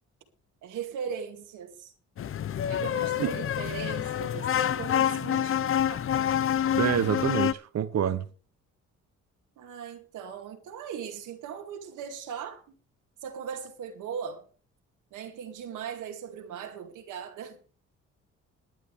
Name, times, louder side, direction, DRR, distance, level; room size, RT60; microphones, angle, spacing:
voice 1, 0.6-1.9 2.7-6.1 9.6-12.8 13.2-14.4 15.1-17.6, right 7 dB, 85° right, 2.2 m, -39 dB
sound 1, 2.2-7.5, left 10 dB, 45° left, 0.7 m, -27 dB
voice 2, 6.8-8.3, right 9 dB, 60° right, 1.1 m, -27 dB
21.5 x 9.3 x 3.4 m
cardioid pair, 90°, 30 cm